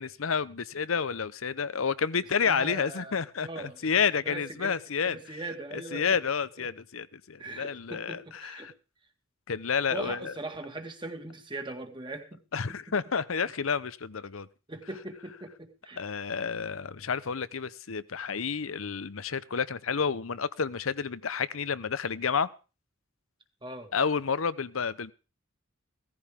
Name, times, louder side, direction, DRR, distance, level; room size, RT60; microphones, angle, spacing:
voice 1, 0.0-5.2 5.7-8.7 9.5-10.3 12.5-14.5 16.0-22.5 23.9-25.1, left 6 dB, 75° left, 0.7 m, -30 dB
voice 2, 2.4-3.2 3.4-3.8 4.3-4.7 5.0-6.2 6.6-6.7 7.4-8.7 9.9-12.4 12.7-12.8 14.7-16.1 23.6-23.9, right 2 dB, 25° right, 1.9 m, -40 dB
16.5 x 14.5 x 3.7 m
head